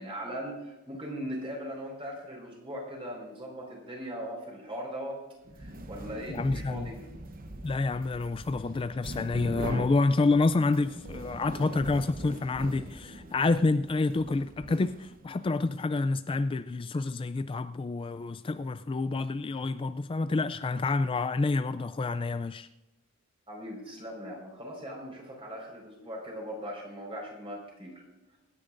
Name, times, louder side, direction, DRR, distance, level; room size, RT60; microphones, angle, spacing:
voice 1, 0.0-5.2 5.5-7.0 23.5-28.0, equal, 25° right, -2 dB, 4.8 m, -39 dB
sound 1, 5.4-15.4, right 1 dB, 45° right, 0.9 m, -42 dB
voice 2, 6.3-6.9 7.6-22.7, left 3 dB, 25° left, 11 dB, 0.3 m, -28 dB
25.0 x 10.0 x 2.6 m, 1.1 s
head